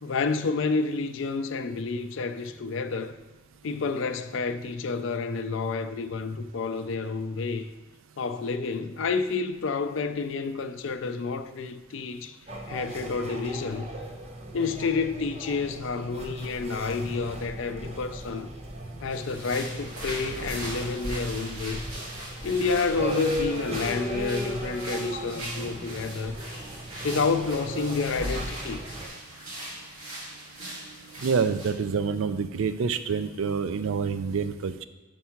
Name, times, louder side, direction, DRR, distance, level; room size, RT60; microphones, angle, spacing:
voice 1, 0.0-3.1 3.6-7.7 8.2-12.4 12.7-13.9 14.5-18.5 19.0-21.8 22.4-26.4 27.0-28.8, left 4 dB, 65° left, 0.4 m, -29 dB
sound 1, 12.5-29.1, equal, 30° right, 0.7 m, -36 dB
sound 2, 19.1-31.7, right 1 dB, 90° right, 1.9 m, -40 dB
voice 2, 31.2-34.9, right 5 dB, 70° right, 0.4 m, -27 dB
5.4 x 4.6 x 5.8 m
head